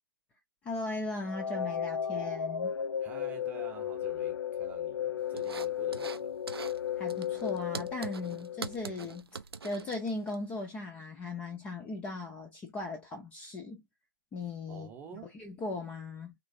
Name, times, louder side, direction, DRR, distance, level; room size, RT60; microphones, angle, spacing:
voice 1, 0.6-2.8 7.0-9.3 9.6-13.8 14.3-16.3, left 3 dB, 10° left, 0.5 m, -38 dB
sound 1, 1.2-9.2, left 9 dB, 80° left, 0.5 m, -35 dB
voice 2, 3.0-6.4 14.7-15.3, right 7 dB, 15° right, 0.7 m, -48 dB
sound 2, 5.4-6.2 6.5-6.8 7.1-10.4, right 5 dB, 80° right, 0.5 m, -42 dB
3.1 x 3.1 x 2.6 m
figure-of-eight pair, 140°, 13 cm